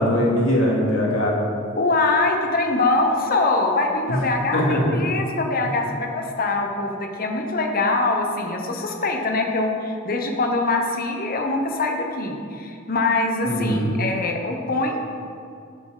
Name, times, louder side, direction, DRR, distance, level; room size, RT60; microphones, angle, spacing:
voice 1, 0.0-1.3 4.5-4.8 13.4-13.9, equal, 85° left, -4 dB, 2.4 m, -21 dB
voice 2, 1.8-15.0, left 3 dB, 45° left, 3 dB, 1.1 m, -23 dB
12.0 x 6.7 x 4.0 m, 2.4 s
head